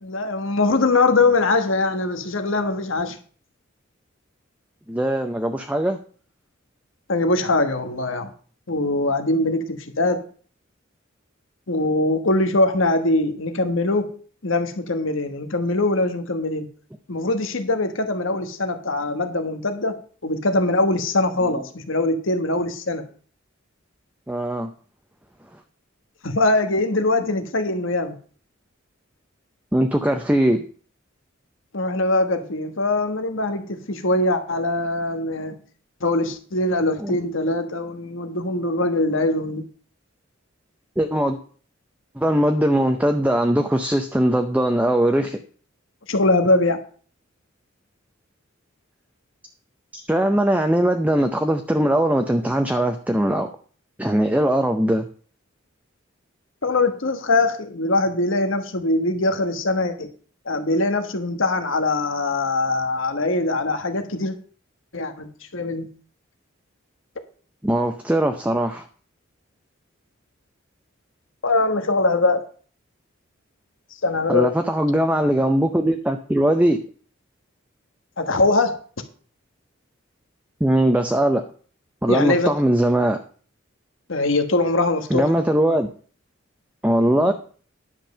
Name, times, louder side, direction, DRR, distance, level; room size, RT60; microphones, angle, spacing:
voice 1, 0.0-3.2 7.1-8.3 8.7-10.3 11.7-14.1 14.4-16.7 17.1-23.1 26.2-28.2 31.7-35.6 36.0-39.7 46.1-46.8 56.6-60.1 60.4-64.4 64.9-65.9 71.4-72.4 74.0-74.5 78.2-78.8 82.1-82.5 84.1-85.2 87.3-87.4, left 2 dB, 75° left, 1.3 m, -22 dB
voice 2, 4.9-6.0 21.4-21.6 24.3-24.7 25.5-25.6 29.7-30.6 37.0-37.2 41.0-41.4 42.1-45.4 50.1-53.5 54.0-55.1 67.6-68.9 74.3-76.8 80.6-81.5 82.0-83.2 85.1-85.9 86.8-87.3, right 1 dB, 5° right, 0.6 m, -20 dB
10.5 x 5.3 x 6.6 m
head